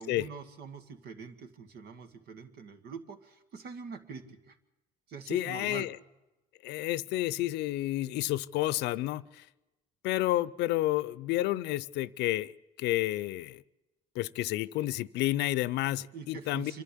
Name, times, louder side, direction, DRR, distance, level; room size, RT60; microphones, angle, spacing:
voice 1, 0.0-4.6 5.1-5.9 16.1-16.8, right 6 dB, 65° right, 8 dB, 2.0 m, -44 dB
voice 2, 5.3-5.9 6.6-9.4 10.0-12.5 12.8-13.6 14.2-16.7, left 16 dB, 85° left, 19 dB, 0.6 m, -30 dB
26.0 x 11.5 x 10.0 m, 1.0 s
cardioid pair, 110°, 17 cm